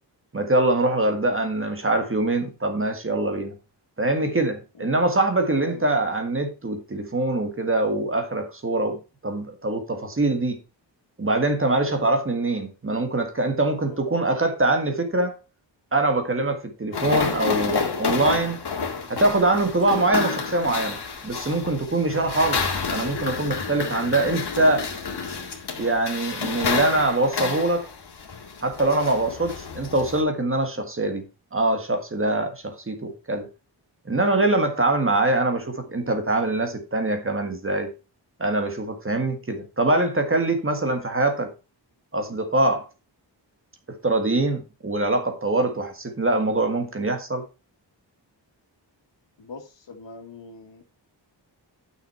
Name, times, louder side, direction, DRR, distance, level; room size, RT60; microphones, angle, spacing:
voice 1, 0.3-3.5 4.0-10.6 11.2-15.3 15.9-18.6 19.1-22.6 22.9-24.9 25.8-27.9 28.6-31.2 31.5-32.5 32.9-33.5 34.0-37.9 38.4-41.5 42.1-42.8 43.9-47.4, right 2 dB, 30° right, 1.7 m, -23 dB
voice 2, 5.6-6.1 13.7-14.0 16.3-16.5 21.9-22.1 30.7-30.9 32.2-32.5 34.5-34.7 38.8-39.0 40.5-40.6 49.4-50.9, left 3 dB, 80° left, 2.1 m, -44 dB
sound 1, 16.9-30.2, left 5 dB, 65° left, 2.1 m, -29 dB
9.4 x 6.5 x 4.3 m
wide cardioid pair, 135°, 43 cm